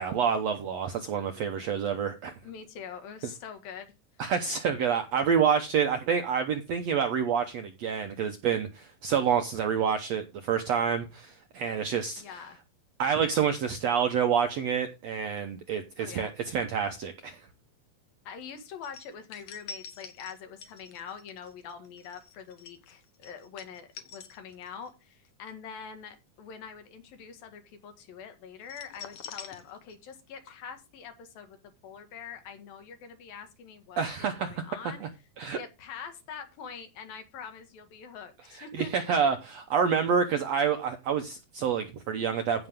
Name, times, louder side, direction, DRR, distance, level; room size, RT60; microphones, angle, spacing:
voice 1, 0.0-2.3 4.2-12.2 13.0-17.4 34.0-35.1 35.4-35.6 38.6-42.7, right 7 dB, 70° right, 1.6 m, -28 dB
voice 2, 2.4-3.9 12.2-12.6 16.0-16.3 18.3-31.6 31.8-35.1 35.4-39.0, left 7 dB, 75° left, 3.5 m, -44 dB
sound 1, 18.8-24.9 25.2-25.5 28.6-30.2 30.4-30.5, left 6 dB, 60° left, 1.8 m, -46 dB
15.5 x 6.0 x 3.6 m
omnidirectional pair, 4.2 m